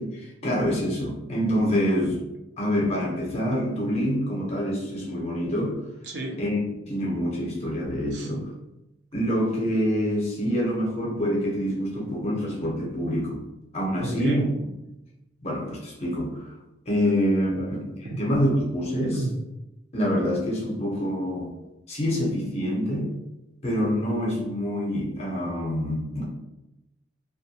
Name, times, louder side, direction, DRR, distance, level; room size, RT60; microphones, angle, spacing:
voice 1, 0.0-2.2 2.6-5.7 6.4-6.6 6.9-8.5 9.1-13.4 13.7-14.5 15.4-16.5 16.9-19.3 19.9-21.5 21.9-23.1 23.6-26.3, equal, 35° left, -3 dB, 0.6 m, -26 dB
voice 2, 6.1-6.4 8.1-8.3 14.0-14.4 17.5-17.7 18.0-18.2 19.1-19.3, right 2 dB, 65° right, 1 dB, 0.5 m, -31 dB
2.3 x 2.1 x 2.7 m, 0.94 s
head